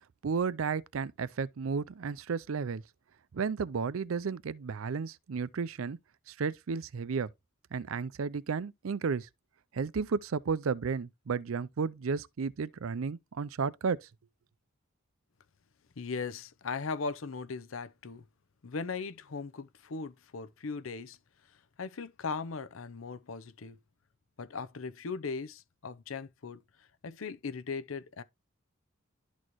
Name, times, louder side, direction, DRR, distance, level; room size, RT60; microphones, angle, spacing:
voice 1, 0.2-2.8 3.3-6.0 6.3-7.3 7.7-9.3 9.7-14.0, right 5 dB, 75° right, 0.5 m, -33 dB
voice 2, 16.0-18.2 18.6-21.2 21.8-23.8 24.4-26.6 27.0-28.2, left 4 dB, 75° left, 0.6 m, -38 dB
12.0 x 4.2 x 3.0 m
head